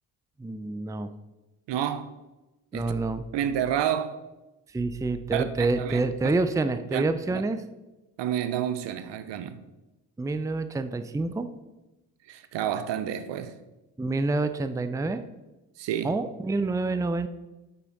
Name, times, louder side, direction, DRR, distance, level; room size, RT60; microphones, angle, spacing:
voice 1, 0.4-1.1 2.7-3.2 4.7-7.6 10.2-11.5 14.0-15.2 16.0-17.3, right 3 dB, 5° right, 0.5 m, -27 dB
voice 2, 1.7-2.1 2.7-2.9 3.3-4.2 5.3-5.4 5.8-6.0 6.9-7.0 7.3-7.4 8.2-9.6 12.3-13.5 15.8-16.1, right 10 dB, 60° right, 0.8 m, -29 dB
8.4 x 7.4 x 4.1 m
hypercardioid pair, 50°, 48 cm